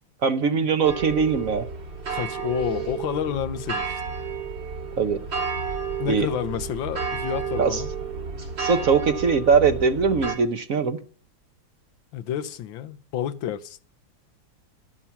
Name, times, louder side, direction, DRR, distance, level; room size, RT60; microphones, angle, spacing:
voice 1, 0.2-1.7 5.0-5.2 6.1-6.3 7.6-7.8 8.6-11.0, right 5 dB, 55° right, 1.0 m, -21 dB
sound 1, 0.8-10.3, right 5 dB, 70° right, 4.1 m, -31 dB
voice 2, 2.1-4.0 6.0-7.9 12.1-13.8, left 10 dB, 85° left, 1.6 m, -30 dB
12.5 x 11.5 x 5.8 m
omnidirectional pair, 2.1 m